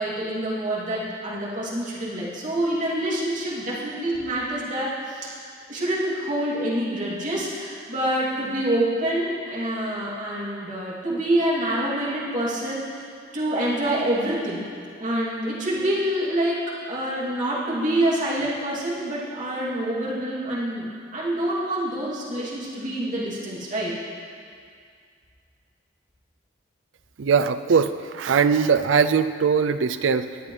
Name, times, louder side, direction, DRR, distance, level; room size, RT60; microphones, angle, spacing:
voice 1, 0.0-5.4 5.7-13.1 13.3-14.6 15.0-24.0, right 1 dB, 40° right, -8 dB, 2.7 m, -26 dB
voice 2, 27.2-30.4, right 6 dB, 80° right, 12 dB, 0.4 m, -21 dB
19.0 x 8.7 x 3.3 m, 2.2 s
head